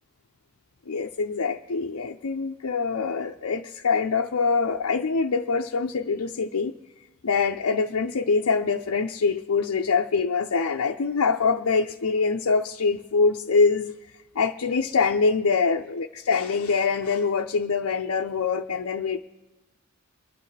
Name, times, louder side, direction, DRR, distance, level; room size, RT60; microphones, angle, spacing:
voice 1, 0.9-6.7 7.2-13.9 14.3-19.2, left 4 dB, 75° left, 0 dB, 0.6 m, -24 dB
24.5 x 11.5 x 3.3 m, 1.1 s
head